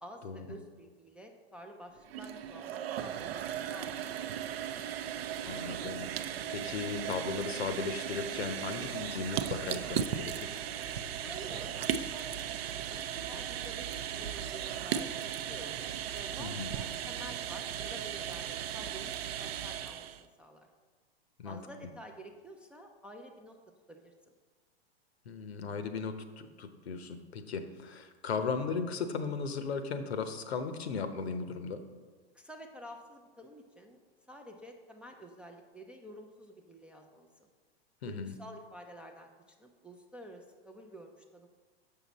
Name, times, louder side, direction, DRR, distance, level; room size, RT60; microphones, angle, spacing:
voice 1, 0.0-3.4 3.7-4.5 11.0-12.5 12.8-20.7 21.4-23.6 23.9-24.1 32.3-34.0 34.3-37.5 38.1-41.5, equal, 5° right, 1 dB, 0.3 m, -50 dB
sound 1, 2.0-20.2, right 9 dB, 70° right, 0.5 m, -37 dB
voice 2, 5.5-10.5 16.4-16.7 21.4-21.6 25.3-31.8 38.0-38.3, left 5 dB, 80° left, 9 dB, 0.8 m, -37 dB
7.1 x 5.7 x 4.0 m, 1.4 s
hypercardioid pair, 110°, 31 cm